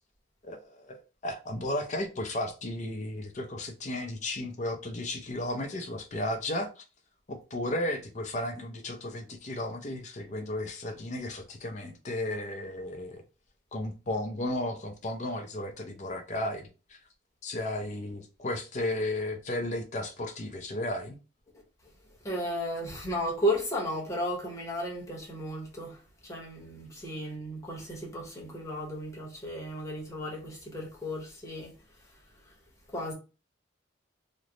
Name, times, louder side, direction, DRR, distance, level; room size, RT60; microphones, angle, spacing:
voice 1, 0.4-6.8 7.3-13.2 13.7-17.0 17.4-21.2, left 1 dB, 40° left, 0.5 m, -34 dB
voice 2, 22.2-31.7 32.5-32.6 32.9-33.1, equal, 15° left, 1.0 m, -34 dB
3.2 x 2.0 x 3.7 m
head